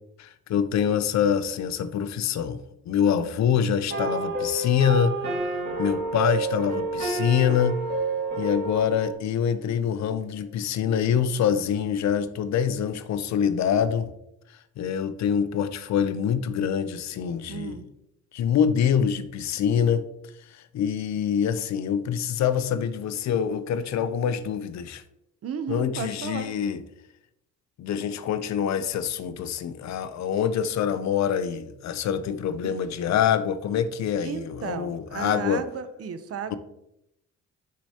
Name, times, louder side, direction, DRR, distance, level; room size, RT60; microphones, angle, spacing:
voice 1, 0.2-5.1 5.8-7.8 8.4-14.1 14.8-17.8 18.3-20.1 20.5-25.0 25.7-26.8 27.8-35.6 36.5-36.6, left 8 dB, 65° left, 0.6 m, -25 dB
sound 1, 3.9-9.1, right 3 dB, 35° right, 2.4 m, -29 dB
voice 2, 17.5-17.9 25.4-26.5 32.6-32.8 34.2-36.6, right 7 dB, 50° right, 0.7 m, -34 dB
6.7 x 6.3 x 2.8 m
cardioid pair, 90°, 30 cm